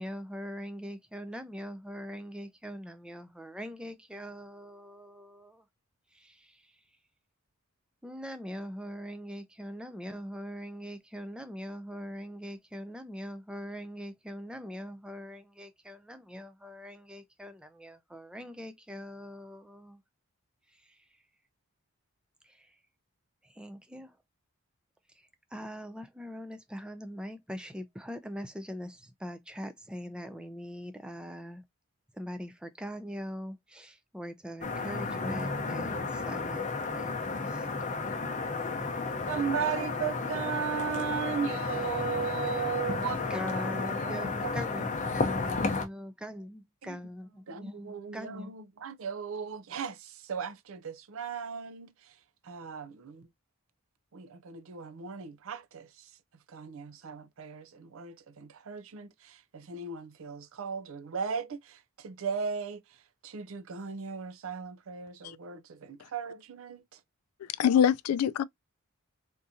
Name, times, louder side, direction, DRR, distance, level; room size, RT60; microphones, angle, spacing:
voice 1, 0.0-5.7 6.1-6.8 8.0-20.0 20.7-21.0 22.4-22.8 23.4-24.2 25.1-31.6 32.1-37.8 42.4-42.6 43.3-48.5, equal, 5° right, 0.4 m, -42 dB
sound 1, 34.6-45.9, left 3 dB, 35° left, 0.7 m, -32 dB
voice 2, 39.3-43.2 43.5-44.6 46.8-47.0 47.5-51.9 52.4-53.3 54.1-56.1 56.5-62.8 63.2-67.0, right 6 dB, 65° right, 0.5 m, -37 dB
voice 3, 67.4-68.4, left 9 dB, 80° left, 0.3 m, -25 dB
3.6 x 2.8 x 2.6 m
head